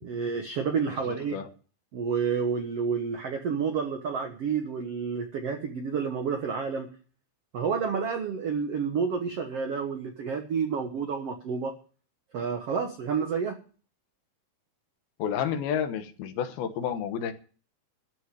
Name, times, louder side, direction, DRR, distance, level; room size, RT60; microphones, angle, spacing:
voice 1, 0.0-1.4 1.9-6.9 7.5-11.7 12.3-13.6, right 6 dB, 75° right, 1.4 m, -29 dB
voice 2, 0.9-1.5 15.2-17.3, left 8 dB, 75° left, 2.9 m, -31 dB
13.5 x 6.4 x 9.9 m
omnidirectional pair, 4.7 m